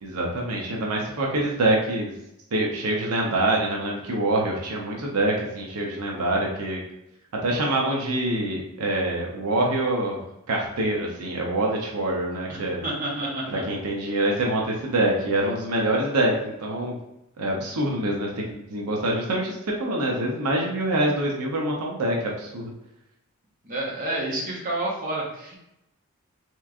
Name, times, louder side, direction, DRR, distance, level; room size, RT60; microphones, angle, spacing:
voice 1, 0.0-2.1 2.5-6.8 7.4-10.2 10.5-12.8 13.5-16.9 17.4-22.7, right 1 dB, 85° right, -1 dB, 0.7 m, -25 dB
voice 2, 12.5-13.6 23.6-25.6, right 1 dB, 40° right, -3 dB, 0.8 m, -29 dB
3.4 x 3.0 x 2.4 m, 0.85 s
head